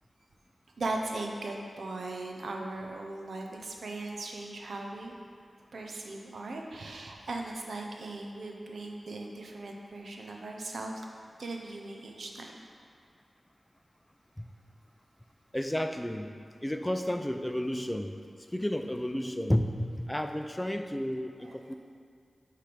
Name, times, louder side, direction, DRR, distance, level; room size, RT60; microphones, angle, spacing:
voice 1, 0.8-5.1 5.7-10.9 11.4-12.5 21.4-21.6, right 2 dB, 80° right, 2 dB, 0.6 m, -38 dB
voice 2, 15.5-16.3 16.6-18.2 18.5-21.7, left 1 dB, 10° left, 7 dB, 0.4 m, -31 dB
7.6 x 3.3 x 5.0 m, 2.1 s
cardioid pair, 55°, 0 cm